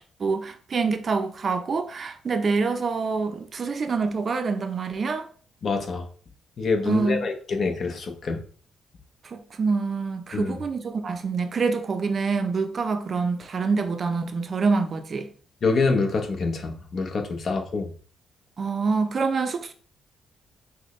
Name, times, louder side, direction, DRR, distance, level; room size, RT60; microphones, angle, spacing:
voice 1, 0.2-5.3 6.9-7.2 9.2-15.3 18.6-19.7, right 4 dB, 45° right, 0.5 m, -26 dB
voice 2, 5.6-6.0 6.6-8.4 10.3-10.6 15.6-17.9, left 4 dB, 50° left, 0.9 m, -26 dB
6.1 x 2.2 x 3.1 m
cardioid pair, 90°, 0 cm